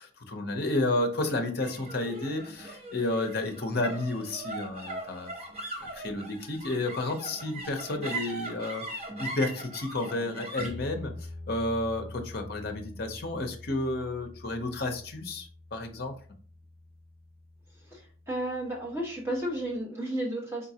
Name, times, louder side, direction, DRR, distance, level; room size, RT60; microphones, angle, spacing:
voice 1, 0.0-5.3 5.9-8.9 9.2-16.1, left 2 dB, 50° left, 5 dB, 0.7 m, -31 dB
sound 1, 1.6-18.2, right 1 dB, 30° right, 1.1 m, -41 dB
voice 2, 17.8-20.7, right 1 dB, 10° right, -4 dB, 1.2 m, -33 dB
4.0 x 3.7 x 2.8 m, 0.43 s
head